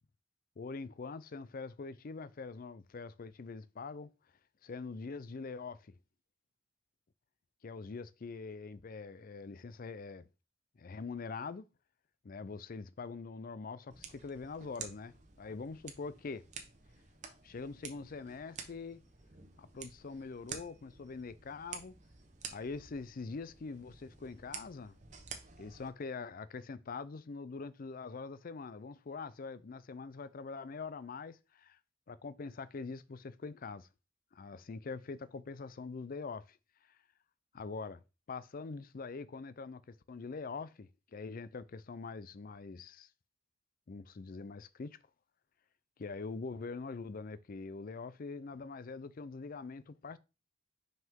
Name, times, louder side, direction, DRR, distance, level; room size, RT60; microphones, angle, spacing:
voice 1, 0.6-4.1 4.6-5.9 7.6-10.3 10.8-11.6 12.2-16.4 17.4-19.0 19.6-21.9 22.5-25.0 25.6-31.8 32.1-33.9 34.3-36.6 36.9-37.0 37.5-38.0 38.3-43.1 43.9-45.0 46.0-50.2, left 4 dB, 40° left, 0.4 m, -44 dB
sound 1, 13.9-25.9, right 6 dB, 35° right, 0.9 m, -50 dB
5.5 x 5.5 x 3.7 m
head